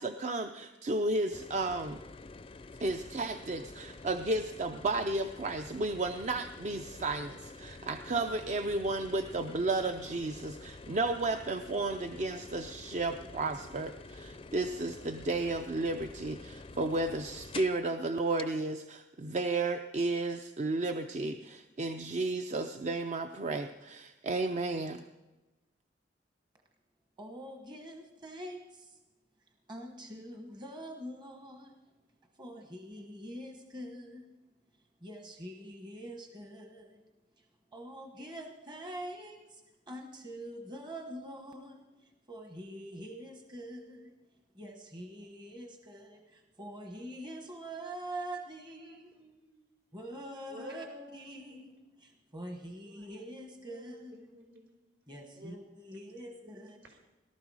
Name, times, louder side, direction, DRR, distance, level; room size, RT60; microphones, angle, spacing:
voice 1, 0.0-2.0 2.8-25.0, right 2 dB, 40° right, 8 dB, 0.5 m, -33 dB
sound 1, 1.3-17.9 18.4-18.5, left 3 dB, 30° left, 0.4 m, -48 dB
voice 2, 27.2-29.0 29.7-31.8 32.4-34.4 35.0-37.0 37.4-37.5 37.7-44.1 44.5-49.1 49.9-50.8 51.1-54.3 55.1-56.8, right 1 dB, 25° right, 4 dB, 1.1 m, -45 dB
voice 3, 48.8-49.6 50.5-52.0 52.8-53.4 53.7-54.8 55.3-55.6 55.9-57.0, left 1 dB, 70° right, 1 dB, 4.4 m, -52 dB
18.5 x 12.5 x 4.8 m, 1.1 s
head